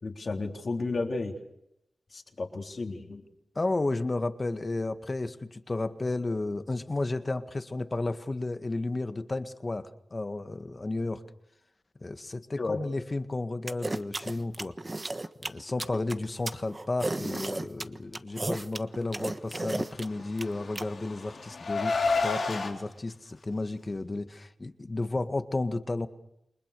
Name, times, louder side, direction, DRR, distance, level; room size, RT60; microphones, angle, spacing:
voice 1, 0.0-1.4 2.1-3.2 12.6-12.8, left 3 dB, 60° left, 2 dB, 3.9 m, -32 dB
voice 2, 3.6-11.2 12.0-14.8 15.4-22.0 22.2-26.1, left 2 dB, 40° left, 9 dB, 1.9 m, -32 dB
sound 1, 13.7-20.8, right 2 dB, 35° right, 1.3 m, -33 dB
Car, 20.2-22.7, left 4 dB, 75° left, 4.0 m, -30 dB
29.0 x 21.5 x 6.9 m, 0.82 s
cardioid pair, 45°, 0 cm